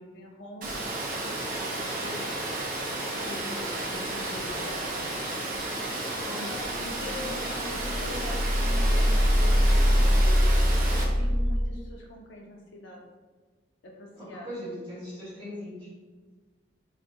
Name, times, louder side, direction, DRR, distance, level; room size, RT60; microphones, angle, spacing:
voice 1, 0.0-5.3 6.3-10.5 10.9-13.0 13.8-14.5, left 1 dB, 80° left, 0 dB, 0.5 m, -43 dB
Water, 0.6-11.0, right 2 dB, 45° right, 0.4 m, -33 dB
voice 2, 6.2-6.6 14.2-15.9, equal, 25° right, -10 dB, 1.1 m, -40 dB
sound 1, 6.7-7.3 7.6-11.6, equal, 15° left, 0.7 m, -23 dB
2.4 x 2.2 x 2.6 m, 1.3 s
head